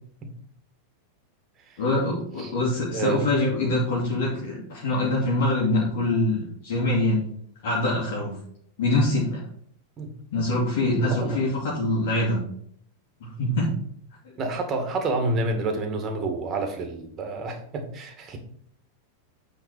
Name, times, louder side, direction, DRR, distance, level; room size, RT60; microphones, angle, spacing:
voice 1, 1.8-7.2 7.6-8.4 8.8-9.4 10.3-12.4 13.2-13.7, left 2 dB, 55° left, -4 dB, 2.3 m, -24 dB
voice 2, 2.9-3.3 10.0-10.1 11.0-11.4 14.4-18.4, right 2 dB, 25° right, 5 dB, 1.9 m, -29 dB
8.9 x 4.0 x 6.0 m, 0.63 s
figure-of-eight pair, 90°, 0 cm